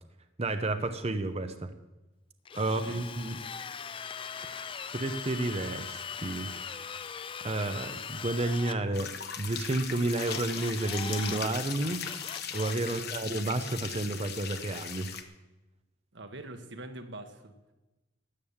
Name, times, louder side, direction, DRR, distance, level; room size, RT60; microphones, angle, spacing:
voice 1, 0.4-1.7 2.5-3.4 4.9-6.9 7.4-12.0 12.5-15.2, right 2 dB, 30° right, 8 dB, 0.7 m, -31 dB
Drill, 2.4-8.8 10.2-11.4 11.8-12.8, left 7 dB, 25° left, 0.4 m, -40 dB
sound 1, 8.9-15.2, left 8 dB, 55° left, 1.1 m, -39 dB
voice 2, 12.8-13.2 16.1-17.5, right 2 dB, 65° right, 6 dB, 1.4 m, -44 dB
13.5 x 9.1 x 7.2 m, 1.0 s
head